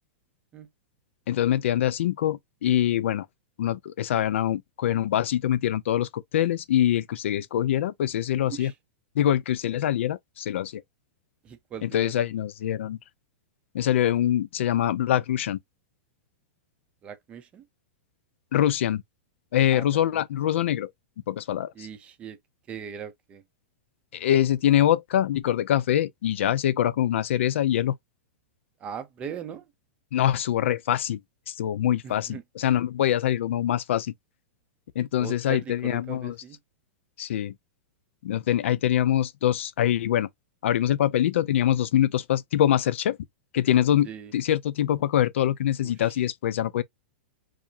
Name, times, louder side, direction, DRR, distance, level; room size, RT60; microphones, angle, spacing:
voice 1, 1.3-3.3 3.6-8.7 9.2-10.8 11.8-13.0 13.7-15.6 18.5-19.0 19.5-20.9 21.3-21.7 24.1-27.9 30.1-31.2 31.5-34.1 35.0-36.3 37.2-37.5 38.2-40.3 40.6-43.2 43.5-46.8, left 11 dB, 70° left, 0.5 m, -24 dB
voice 2, 11.4-12.3 17.0-17.7 19.7-20.2 21.7-22.4 22.7-23.4 28.8-29.7 32.0-32.4 35.2-36.6 44.0-44.3 45.8-46.2, right 8 dB, 15° right, 0.5 m, -40 dB
4.9 x 2.1 x 2.7 m
supercardioid pair, 170°, 7 cm